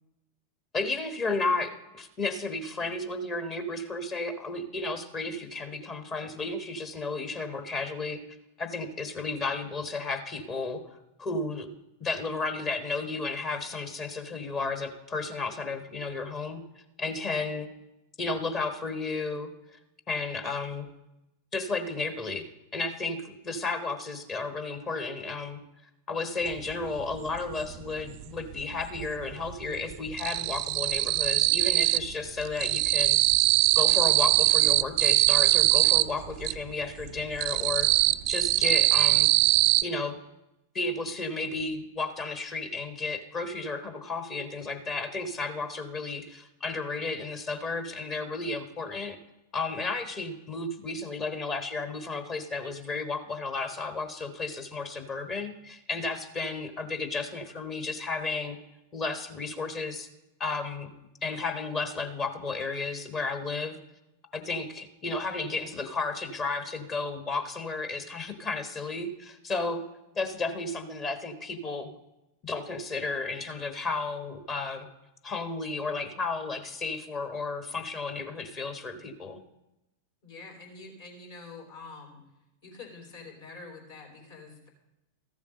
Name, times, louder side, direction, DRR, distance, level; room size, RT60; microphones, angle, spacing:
voice 1, 0.7-8.2 8.6-11.7 12.0-16.6 17.0-17.7 18.2-19.8 20.1-20.9 21.5-25.6 26.1-33.2 33.8-37.9 38.3-39.3 39.8-40.2 40.7-49.2 49.5-58.6 58.9-60.1 60.4-60.9 61.2-63.8 64.3-69.8 70.1-71.9 72.4-74.9 75.2-79.4, left 3 dB, 30° left, 8 dB, 1.1 m, -33 dB
sound 1, 26.6-26.7 27.0-28.2 28.5-29.2 29.5-32.1 32.4-36.6 37.0-39.8, right 19 dB, 45° right, 0.3 m, -22 dB
voice 2, 80.2-82.2 82.6-84.7, left 4 dB, 60° left, 0 dB, 3.7 m, -46 dB
13.5 x 7.2 x 5.3 m, 0.94 s
figure-of-eight pair, 90°, 0 cm